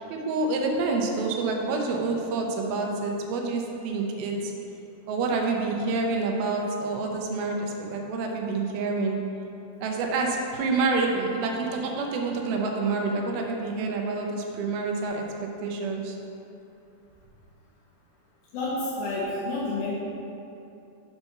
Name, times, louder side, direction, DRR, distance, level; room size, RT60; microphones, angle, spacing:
voice 1, 0.0-4.5 5.1-9.2 9.8-16.2, right 3 dB, 80° right, 1 dB, 2.6 m, -28 dB
voice 2, 18.5-19.9, left 2 dB, 70° left, -8 dB, 2.1 m, -29 dB
8.0 x 4.2 x 5.8 m, 2.8 s
omnidirectional pair, 4.5 m